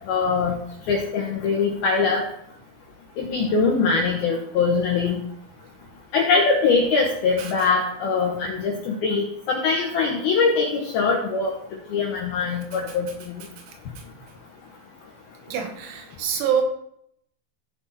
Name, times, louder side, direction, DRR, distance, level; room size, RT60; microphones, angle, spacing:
voice 1, 0.1-0.6 0.9-2.2 3.2-5.2 6.1-11.5 11.9-13.1, left 4 dB, 80° left, 0 dB, 2.2 m, -22 dB
voice 2, 15.5-16.6, right 8 dB, 85° right, 4 dB, 4.3 m, -26 dB
15.5 x 6.2 x 4.2 m, 0.70 s
omnidirectional pair, 6.0 m